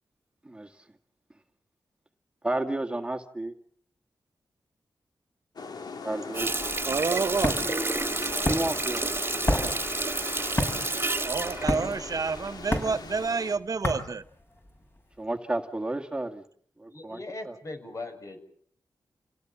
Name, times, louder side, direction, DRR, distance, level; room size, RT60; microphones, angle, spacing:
voice 1, 2.4-3.5 6.0-6.7 8.4-9.0 9.3-9.6 15.2-16.4 16.8-17.2 17.5-17.6, right 2 dB, 15° right, 1.9 m, -32 dB
sound 1, 5.6-13.6, left 4 dB, 65° left, 2.2 m, -39 dB
Water tap faucet, 6.3-12.7 13.1-13.3, right 3 dB, 30° right, 2.0 m, -30 dB
sound 2, 6.8-15.0, left 1 dB, 30° left, 6.8 m, -31 dB
voice 2, 6.8-7.7 8.2-8.3 11.2-14.2, right 4 dB, 55° right, 0.9 m, -29 dB
voice 3, 16.9-18.4, left 2 dB, 45° left, 6.3 m, -39 dB
29.0 x 17.5 x 7.3 m
cardioid pair, 70°, 7 cm